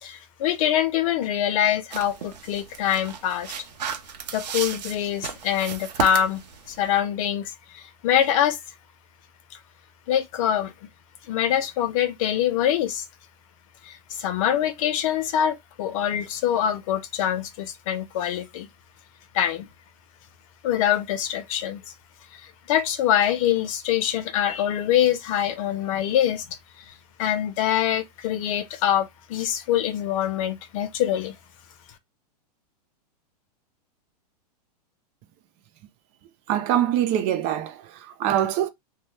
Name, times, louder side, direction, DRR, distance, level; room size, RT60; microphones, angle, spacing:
voice 1, 0.0-3.5 4.3-6.4 6.7-8.6 10.1-10.7 11.3-13.0 13.8-18.7 19.3-19.7 20.6-21.8 22.3-26.4 27.2-31.3, left 10 dB, 55° left, 0.7 m, -24 dB
sound 1, 1.9-7.0, right 7 dB, 90° right, 0.8 m, -34 dB
voice 2, 36.5-38.7, right 11 dB, 40° right, 0.6 m, -24 dB
2.7 x 2.3 x 3.2 m
hypercardioid pair, 140°, 21 cm